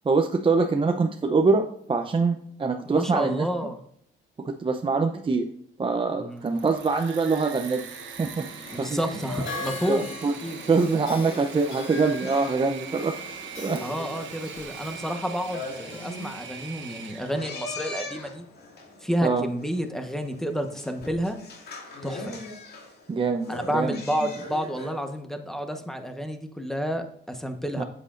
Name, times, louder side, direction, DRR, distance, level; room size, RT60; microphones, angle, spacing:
voice 1, 0.0-3.5 4.4-5.5 5.8-7.8 8.2-8.5 8.8-9.0 9.9-10.4 10.7-13.1 13.6-13.8 19.2-19.4 23.1-24.0 27.8-27.9, right 4 dB, 25° right, 4 dB, 0.7 m, -24 dB
voice 2, 2.8-3.8 6.1-6.5 8.7-10.1 10.4-10.6 13.8-18.4 19.0-21.4 22.0-22.4 23.5-27.8, equal, ahead, 6 dB, 1.2 m, -30 dB
Engine / Mechanisms, 6.3-17.5, right 7 dB, 70° right, 1.3 m, -41 dB
sound 1, 7.5-17.1, left 4 dB, 80° left, 1.5 m, -44 dB
sound 2, 8.6-25.2, left 2 dB, 55° left, 2.3 m, -41 dB
8.0 x 7.8 x 2.6 m, 0.67 s
cardioid pair, 90°, 20 cm